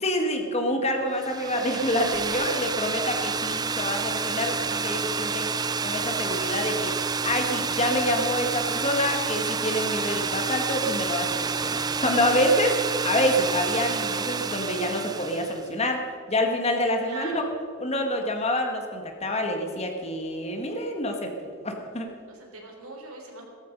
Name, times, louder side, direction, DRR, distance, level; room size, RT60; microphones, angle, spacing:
voice 1, 0.0-5.5 5.8-6.9 7.3-12.7 13.0-17.5 17.8-21.3 21.6-22.1, left 1 dB, 30° left, 3 dB, 1.7 m, -27 dB
sound 1, 1.2-15.7, right 5 dB, 20° right, 0.4 m, -29 dB
voice 2, 12.2-12.6 17.0-17.5 22.2-23.4, right 3 dB, 75° right, 1 dB, 3.7 m, -41 dB
16.0 x 14.5 x 5.4 m, 2.3 s
head